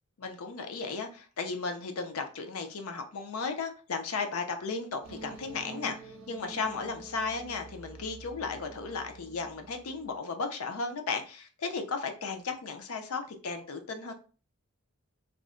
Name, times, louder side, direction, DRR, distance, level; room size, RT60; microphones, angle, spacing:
voice 1, 0.2-14.1, left 4 dB, 80° left, 6 dB, 0.6 m, -35 dB
sound 1, 5.0-10.2, right 4 dB, 65° right, 0.6 m, -48 dB
2.4 x 2.1 x 3.6 m, 0.37 s
head